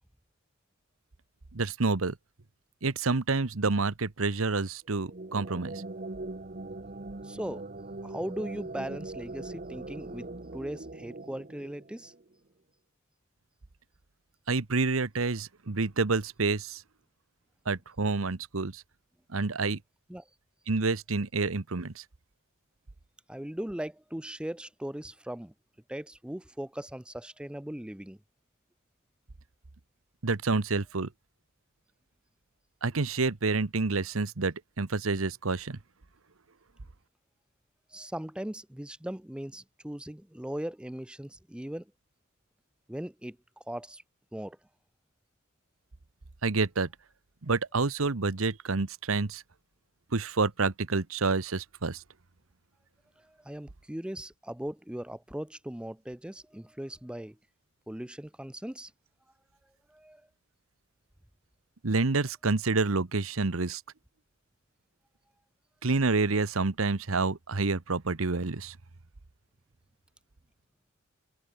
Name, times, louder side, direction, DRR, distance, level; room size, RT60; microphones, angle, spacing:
voice 1, 1.5-2.1 2.8-5.8 14.5-16.8 17.7-18.8 19.3-19.8 20.7-22.0 30.2-31.1 32.8-35.8 46.4-46.9 47.4-49.4 50.1-52.0 61.8-63.8 65.8-68.7, right 3 dB, 85° right, 1.1 m, -28 dB
sound 1, 4.9-12.3, right 2 dB, 45° right, 1.3 m, -41 dB
voice 2, 7.2-7.6 8.0-12.1 20.1-20.2 23.3-25.5 25.9-28.2 37.9-41.8 42.9-43.4 43.7-44.0 44.3-44.6 53.3-57.4 57.9-58.9 59.9-60.2, right 1 dB, 5° right, 0.6 m, -39 dB
head